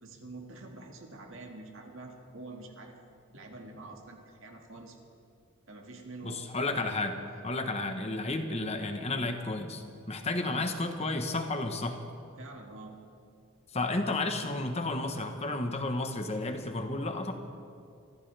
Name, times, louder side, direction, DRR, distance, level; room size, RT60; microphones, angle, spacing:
voice 1, 0.0-3.0 3.3-5.0 5.7-6.5 7.0-7.5 10.4-10.7 12.4-13.0, right 2 dB, 60° right, 2 dB, 2.0 m, -46 dB
voice 2, 6.2-7.2 7.4-12.0 13.7-17.3, left 2 dB, 30° left, 6 dB, 1.1 m, -32 dB
25.0 x 14.5 x 3.4 m, 2.5 s
head